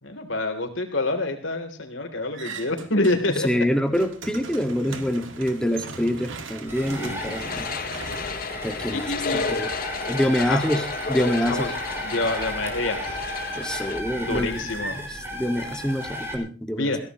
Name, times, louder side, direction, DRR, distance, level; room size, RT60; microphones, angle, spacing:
voice 1, 0.0-3.5 4.8-4.9 7.0-7.6 8.9-9.5 10.4-10.6 11.4-11.7 12.0-13.2 14.2-15.0 16.8-17.0, left 2 dB, 75° left, 5 dB, 3.4 m, -27 dB
sound 1, 2.3-3.5 3.8-9.1, right 4 dB, 85° right, 2.0 m, -40 dB
voice 2, 3.4-7.7 8.6-9.7 10.1-11.7 13.6-14.7 15.0-17.0, equal, 5° left, 5 dB, 1.9 m, -26 dB
sound 2, 6.7-16.4, equal, 15° right, 5.4 m, -34 dB
sound 3, 7.0-14.0, left 5 dB, 50° left, 0.8 m, -32 dB
22.0 x 16.5 x 3.1 m, 0.34 s
head